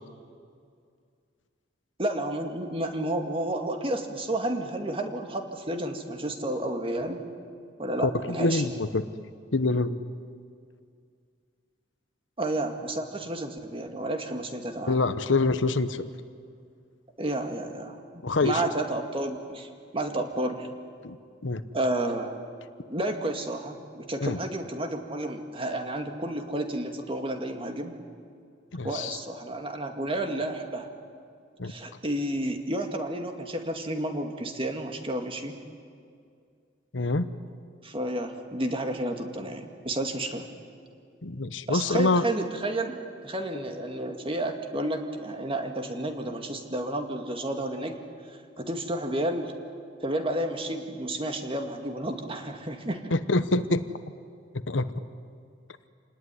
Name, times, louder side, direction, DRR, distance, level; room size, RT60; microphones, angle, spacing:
voice 1, 2.0-7.3 7.8-8.6 12.4-15.0 17.2-19.7 19.9-20.7 21.7-22.3 22.9-28.0 28.8-30.9 31.6-35.6 37.8-40.4 41.7-48.0 48.3-49.5 50.0-53.1, right 1 dB, 30° right, 5 dB, 2.2 m, -31 dB
voice 2, 8.0-9.1 9.5-10.0 14.9-16.0 18.2-18.6 21.0-21.2 21.4-21.6 24.2-24.4 28.7-29.2 31.6-31.7 36.9-37.3 41.2-42.2 53.1-53.8 54.7-54.9, left 2 dB, 75° left, 12 dB, 1.1 m, -25 dB
27.5 x 19.0 x 9.9 m, 2.3 s
head